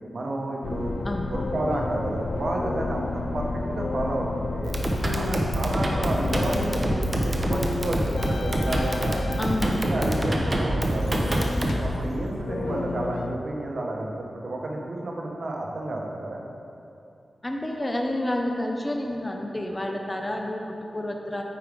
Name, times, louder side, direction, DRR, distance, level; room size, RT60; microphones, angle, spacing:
voice 1, 0.1-1.0 1.3-3.1 3.3-4.7 5.1-9.3 9.6-11.2 11.7-16.4, right 1 dB, 65° right, -1 dB, 0.9 m, -31 dB
sound 1, 0.6-13.4, left 3 dB, 90° left, 0.3 m, -31 dB
sound 2, 4.6-11.9, right 1 dB, 30° right, 0.8 m, -26 dB
voice 2, 9.4-9.8 17.4-21.4, left 1 dB, 20° left, 2 dB, 0.6 m, -29 dB
8.8 x 4.8 x 3.5 m, 2.6 s
wide cardioid pair, 80°, 0 cm